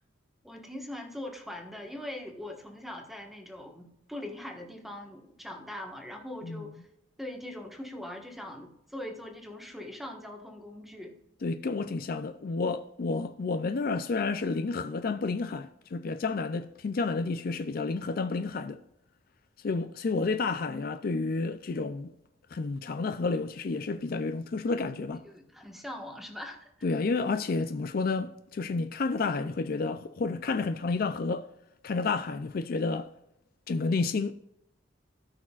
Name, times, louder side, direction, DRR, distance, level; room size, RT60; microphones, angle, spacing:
voice 1, 0.4-6.8 7.2-11.2 25.2-26.7, left 1 dB, ahead, 1.4 m, -41 dB
voice 2, 11.4-18.8 19.6-22.1 22.5-25.2 26.8-31.5 31.8-33.1 33.7-34.3, left 3 dB, 50° left, 0.4 m, -30 dB
17.5 x 6.2 x 2.4 m
head